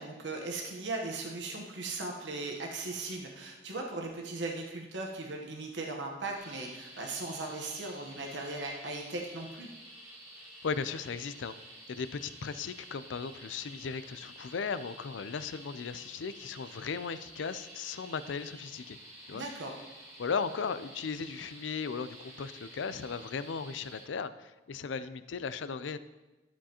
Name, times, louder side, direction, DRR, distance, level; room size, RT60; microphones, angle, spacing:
voice 1, 0.0-9.7 19.3-19.8, right 2 dB, 80° right, 1 dB, 1.1 m, -38 dB
sound 1, 6.3-24.0, right 1 dB, 15° right, 1.7 m, -51 dB
voice 2, 10.6-11.5 11.9-19.0 19.3-19.4 20.2-26.0, left 5 dB, 85° left, 13 dB, 0.4 m, -36 dB
12.5 x 7.2 x 2.9 m, 1.1 s
head